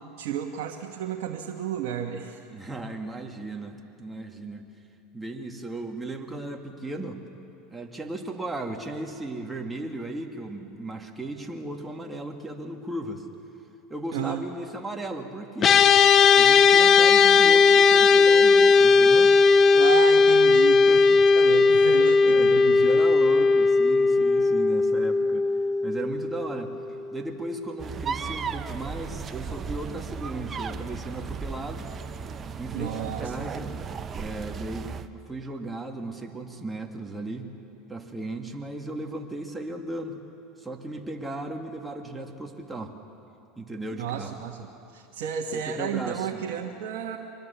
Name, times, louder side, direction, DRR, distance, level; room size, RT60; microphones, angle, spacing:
voice 1, 0.0-2.4 14.1-14.4 19.7-22.9 32.7-33.5 44.0-44.7 44.9-47.2, right 9 dB, 65° right, 1 dB, 1.4 m, -32 dB
voice 2, 2.5-4.6 5.1-7.2 7.7-13.3 13.9-15.9 16.3-19.3 20.9-21.3 22.3-25.5 25.8-26.7 27.1-31.9 32.6-33.7 34.2-34.9 35.3-37.5 37.9-40.2 40.6-42.9 43.6-44.3 45.5-46.4, right 2 dB, 10° right, 3 dB, 2.1 m, -36 dB
sound 1, 15.6-27.1, left 4 dB, 35° left, 0.9 m, -18 dB
sound 2, 27.8-35.1, right 5 dB, 30° right, 0.9 m, -35 dB
24.0 x 20.0 x 7.1 m, 2.8 s
hypercardioid pair, 90°, 0 cm